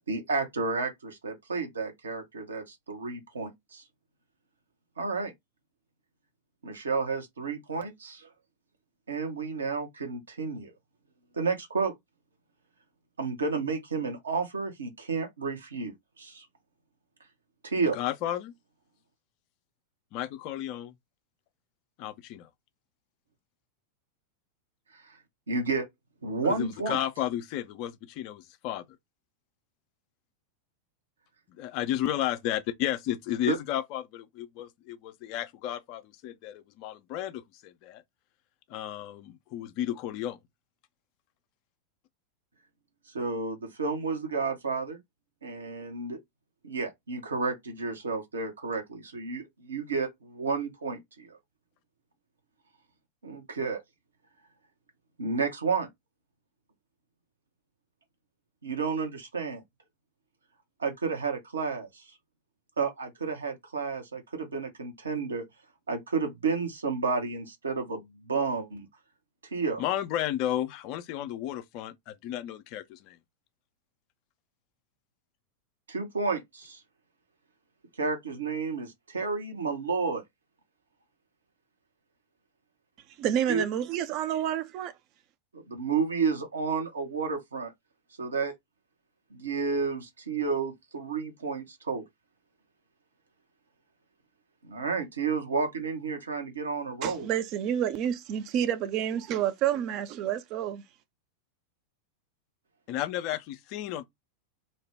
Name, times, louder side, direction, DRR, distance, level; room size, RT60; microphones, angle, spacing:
voice 1, 0.1-3.8 5.0-5.3 6.6-8.3 9.1-10.7 11.3-11.9 13.2-16.4 17.6-18.0 25.1-25.2 25.5-25.8 26.2-27.0 33.5-33.6 43.1-45.0 45.4-46.2 46.6-51.4 53.2-53.8 55.2-55.9 58.6-59.6 60.8-62.0 62.8-65.4 65.9-68.9 69.5-69.8 75.9-76.8 78.0-80.2 83.5-83.6 85.5-87.7 88.2-88.5 89.3-92.0 94.6-97.3, right 4 dB, 70° right, 0.9 m, -31 dB
voice 2, 17.9-18.5 20.1-20.9 22.0-22.5 26.4-28.9 31.6-38.0 38.7-40.4 69.8-73.2 102.9-104.0, left 12 dB, 45° left, 0.4 m, -33 dB
voice 3, 83.2-84.9 97.0-100.8, right 10 dB, 40° right, 0.4 m, -29 dB
2.6 x 2.1 x 3.4 m
figure-of-eight pair, 90°, 0 cm